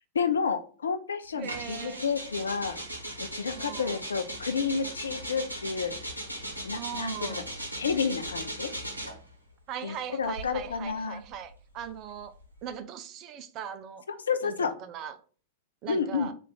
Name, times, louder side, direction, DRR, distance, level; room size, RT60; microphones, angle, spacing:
voice 1, 0.1-2.8 3.2-5.9 6.6-7.1 7.8-8.7 9.8-11.2 14.3-14.7 15.9-16.3, left 6 dB, 70° left, 0.4 m, -30 dB
voice 2, 1.4-2.0 3.5-4.0 6.7-7.5 9.7-12.3 12.6-14.0 14.4-15.2 15.8-16.3, right 8 dB, 40° right, 0.5 m, -39 dB
sound 1, 1.4-9.3 10.2-12.7, equal, 85° right, 0.8 m, -38 dB
4.0 x 2.5 x 4.0 m
figure-of-eight pair, 90°, 0 cm